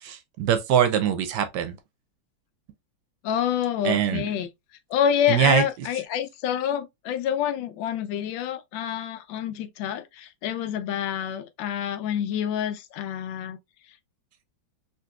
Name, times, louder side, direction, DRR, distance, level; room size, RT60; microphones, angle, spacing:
voice 1, 0.0-1.7 3.8-4.2 5.3-5.6, right 9 dB, 70° right, 1.1 m, -22 dB
voice 2, 3.2-4.5 4.9-13.6, left 9 dB, 80° left, 1.3 m, -27 dB
3.9 x 2.8 x 2.3 m
omnidirectional pair, 2.1 m